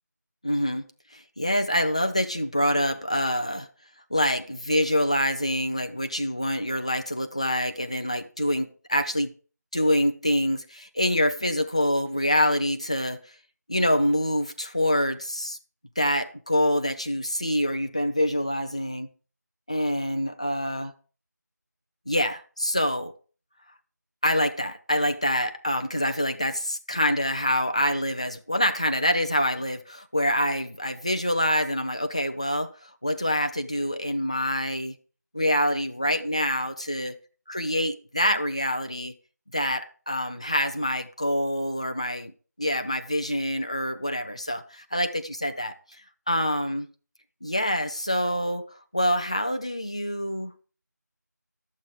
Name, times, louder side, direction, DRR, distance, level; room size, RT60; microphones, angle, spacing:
voice 1, 0.4-0.9 1.1-3.7 4.1-9.3 9.7-13.2 13.7-15.6 16.0-19.1 19.7-20.9 22.1-23.1 24.2-35.0 35.3-37.2 37.5-39.1 39.5-42.3 42.6-45.7 46.3-46.9 47.4-50.5, equal, 20° left, 0.5 m, -26 dB
11.5 x 7.6 x 4.9 m
figure-of-eight pair, 170°, 10 cm